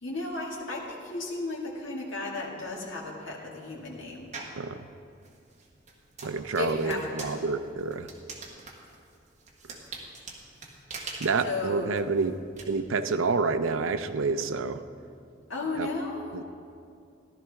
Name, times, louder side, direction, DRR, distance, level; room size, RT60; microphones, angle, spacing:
voice 1, 0.0-4.3 6.6-7.3 11.4-11.9 15.5-16.3, left 3 dB, 75° left, -4 dB, 2.1 m, -34 dB
sound 1, 4.3-4.6 5.2-12.6, right 3 dB, 35° right, 1.4 m, -43 dB
voice 2, 6.2-8.1 11.2-12.4 12.7-14.8 15.8-15.9 16.3-16.4, right 4 dB, 85° right, 10 dB, 0.5 m, -28 dB
14.5 x 12.0 x 3.5 m, 2.5 s
head